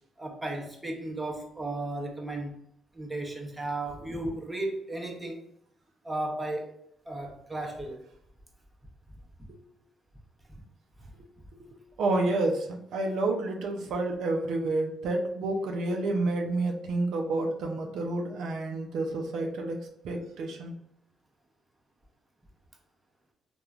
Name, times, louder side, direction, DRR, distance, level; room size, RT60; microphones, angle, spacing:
voice 1, 0.2-2.6 2.9-5.4 6.0-6.7 7.1-8.0, right 2 dB, 15° right, 0 dB, 0.6 m, -34 dB
voice 2, 12.0-20.7, right 2 dB, 75° right, 2 dB, 0.4 m, -29 dB
3.0 x 2.2 x 2.4 m, 0.73 s
cardioid pair, 90°, 0 cm